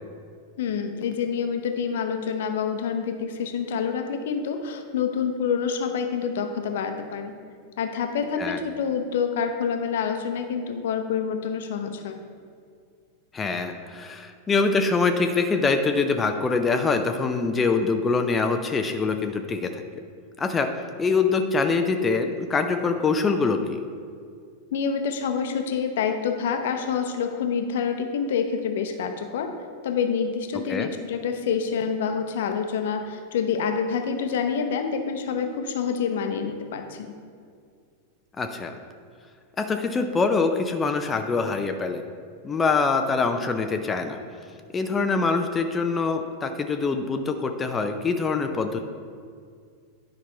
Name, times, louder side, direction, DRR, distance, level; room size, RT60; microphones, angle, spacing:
voice 1, 0.6-7.3 7.8-12.2 24.7-29.5 29.8-37.1, left 6 dB, 55° left, 6 dB, 0.8 m, -27 dB
voice 2, 13.3-19.8 20.4-23.8 30.7-30.9 38.4-38.7 39.6-42.0 42.4-44.2 44.7-48.8, left 4 dB, 20° left, 6 dB, 0.5 m, -24 dB
10.0 x 5.3 x 4.5 m, 2.2 s
figure-of-eight pair, 90°, 0 cm